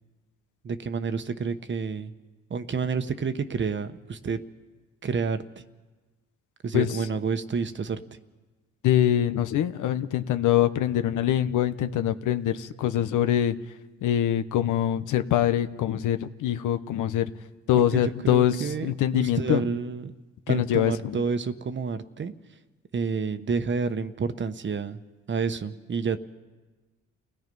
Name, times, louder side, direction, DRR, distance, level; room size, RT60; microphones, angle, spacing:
voice 1, 0.6-2.1 2.5-4.4 5.0-5.4 6.6-8.0 17.7-20.1 20.5-22.3 22.9-25.0 25.3-26.2, right 5 dB, 40° right, 10 dB, 1.1 m, -29 dB
voice 2, 8.8-13.5 14.0-17.3 17.7-19.7 20.5-21.2, left 11 dB, 80° left, 10 dB, 0.9 m, -24 dB
29.5 x 17.5 x 5.4 m, 1.3 s
cardioid pair, 90°, 30 cm